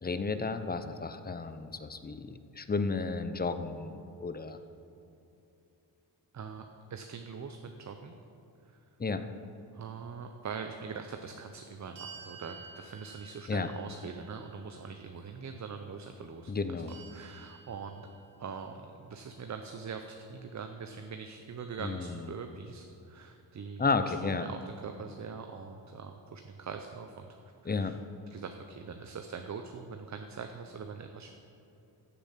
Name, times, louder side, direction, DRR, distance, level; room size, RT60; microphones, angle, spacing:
voice 1, 0.0-4.6 9.0-9.2 13.5-13.7 16.5-16.9 21.8-22.2 23.8-24.5 27.7-28.0, left 4 dB, 20° left, 10 dB, 0.6 m, -32 dB
voice 2, 6.3-8.1 8.7-8.8 9.7-16.5 17.1-18.1 18.4-24.1 24.4-27.4 27.6-28.0 28.3-31.3, right 5 dB, 40° right, 6 dB, 0.7 m, -43 dB
sound 1, 11.9-15.1 16.9-18.6, right 5 dB, 65° right, 1.6 m, -52 dB
15.0 x 7.0 x 5.8 m, 2.9 s
cardioid pair, 115°, 44 cm